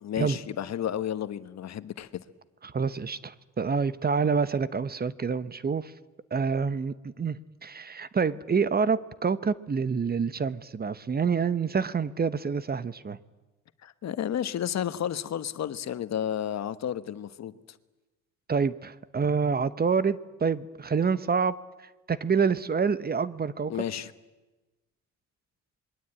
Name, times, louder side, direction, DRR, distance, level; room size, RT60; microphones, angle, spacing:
voice 1, 0.0-2.1 13.8-17.5 23.7-24.1, left 10 dB, 60° left, 13 dB, 1.2 m, -32 dB
voice 2, 2.6-5.9 6.3-13.2 18.5-21.5 22.1-23.7, right 5 dB, 30° right, 16 dB, 1.0 m, -27 dB
26.5 x 21.5 x 8.9 m, 1.1 s
cardioid pair, 90°, 30 cm